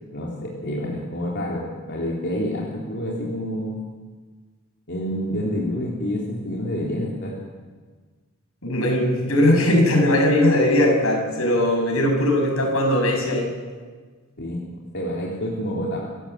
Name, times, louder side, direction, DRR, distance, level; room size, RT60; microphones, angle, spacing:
voice 1, 0.1-3.8 4.9-7.3 14.4-16.0, equal, 55° left, -4 dB, 3.5 m, -28 dB
voice 2, 8.6-13.5, left 1 dB, 75° left, 2 dB, 6.6 m, -19 dB
27.5 x 15.0 x 8.1 m, 1.5 s
head